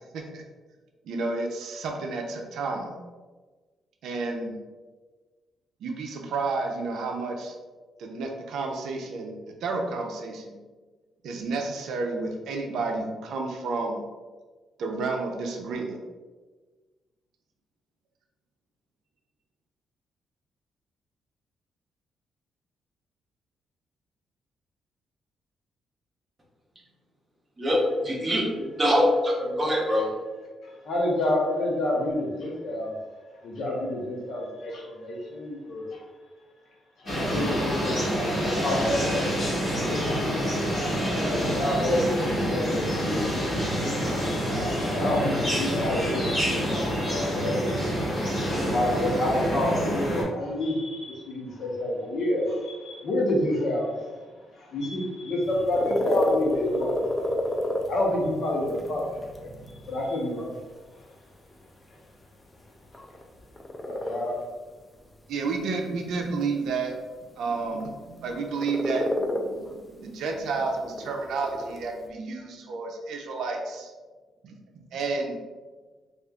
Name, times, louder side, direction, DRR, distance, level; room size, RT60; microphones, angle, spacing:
voice 1, 1.0-3.0 4.0-4.6 5.8-7.6 8.0-10.6 11.2-14.0 14.8-16.0 65.3-66.9 67.4-73.9 74.4-74.5 74.9-75.4, right 3 dB, 80° right, 2 dB, 0.5 m, -31 dB
voice 2, 27.6-28.4 28.8-30.1, equal, 20° right, -3 dB, 0.8 m, -23 dB
voice 3, 30.6-33.0 33.4-36.0 37.0-39.3 39.7-40.6 41.3-43.9 44.2-47.7 48.2-53.9 54.5-57.3 57.9-59.5 59.9-60.6 63.8-64.4, left 1 dB, 55° left, -2 dB, 0.9 m, -29 dB
sound 1, 37.1-50.2, equal, 30° left, 1.5 m, -27 dB
sound 2, 55.4-72.1, left 1 dB, 15° left, 0.4 m, -32 dB
4.9 x 2.4 x 2.3 m, 1.3 s
cardioid pair, 160°, 0 cm